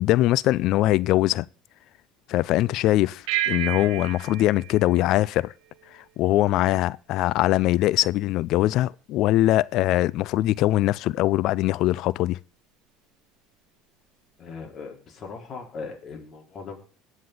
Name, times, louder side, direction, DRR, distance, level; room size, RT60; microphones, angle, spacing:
voice 1, 0.0-1.4 2.3-5.5 6.2-12.4, left 15 dB, 60° left, 0.5 m, -22 dB
sound 1, 3.3-6.0, right 14 dB, 70° right, 1.5 m, -32 dB
voice 2, 14.4-16.8, left 4 dB, 45° left, 4.9 m, -39 dB
21.0 x 7.4 x 4.0 m
hypercardioid pair, 80°, 0 cm